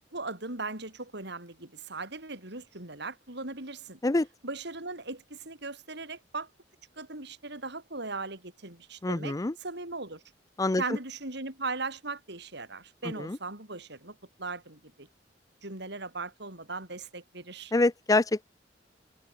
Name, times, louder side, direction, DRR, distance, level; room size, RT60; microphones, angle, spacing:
voice 1, 0.1-4.0 4.4-6.5 7.0-9.4 9.6-10.2 10.8-15.1 15.6-17.7, right 3 dB, 65° right, 6.7 m, -38 dB
voice 2, 9.0-9.5 10.6-11.0 13.2-13.4 17.7-18.4, left 2 dB, 20° left, 0.5 m, -26 dB
head